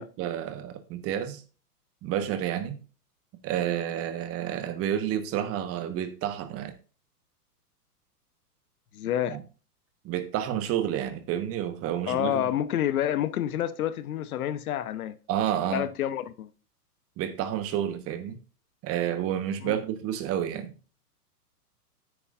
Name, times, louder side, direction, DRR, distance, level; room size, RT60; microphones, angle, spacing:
voice 1, 0.0-1.4 2.0-2.8 3.4-6.7 9.3-9.4 10.0-12.5 15.3-15.9 17.2-18.4 18.8-20.7, right 10 dB, 30° right, 1.3 m, -30 dB
voice 2, 8.9-9.4 12.1-15.2 15.7-16.5 19.6-19.8, left 11 dB, 60° left, 1.0 m, -28 dB
9.7 x 9.4 x 2.5 m
hypercardioid pair, 115°, 47 cm